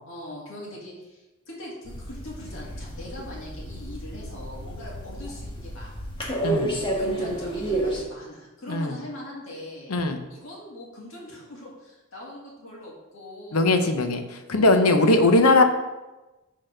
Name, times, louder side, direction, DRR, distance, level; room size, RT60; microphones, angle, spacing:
voice 1, 0.1-6.1 7.0-9.9 10.3-13.8 14.5-15.6, left 1 dB, 65° left, -4 dB, 2.2 m, -41 dB
sound 1, 1.8-8.0, right 1 dB, 20° left, 1.4 m, -31 dB
voice 2, 6.4-6.8 8.7-8.9 9.9-10.2 13.5-15.6, left 2 dB, 85° left, 6 dB, 0.8 m, -20 dB
6.3 x 4.1 x 6.4 m, 1.1 s
head